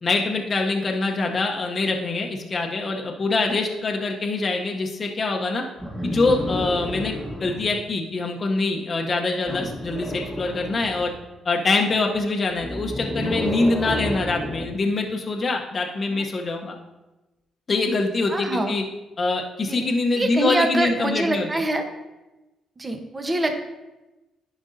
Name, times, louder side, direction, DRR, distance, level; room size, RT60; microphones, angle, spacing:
voice 1, 0.0-5.6 6.0-7.1 7.4-11.1 11.4-16.7 17.7-18.8 19.2-21.6, left 3 dB, 40° left, 1 dB, 0.8 m, -24 dB
sound 1, 5.8-7.8 9.4-11.2 12.5-14.8 16.1-16.2, equal, 5° right, 1.4 m, -30 dB
voice 2, 18.3-18.7 19.7-19.8 20.2-21.8 22.8-23.6, right 1 dB, 25° right, 4 dB, 1.0 m, -24 dB
11.0 x 5.2 x 2.7 m, 1.1 s
cardioid pair, 90°, 0 cm